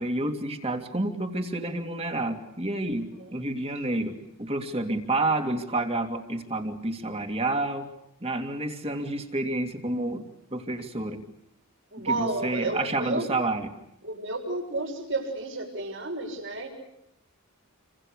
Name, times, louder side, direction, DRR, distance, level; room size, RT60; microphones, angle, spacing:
voice 1, 0.0-7.9 8.2-10.2 10.5-11.2 12.0-13.7, right 2 dB, 30° right, 5 dB, 2.9 m, -29 dB
voice 2, 3.1-3.4 11.9-13.2 14.0-16.7, right 2 dB, 60° right, 3 dB, 6.6 m, -31 dB
29.0 x 26.0 x 6.7 m, 0.81 s
head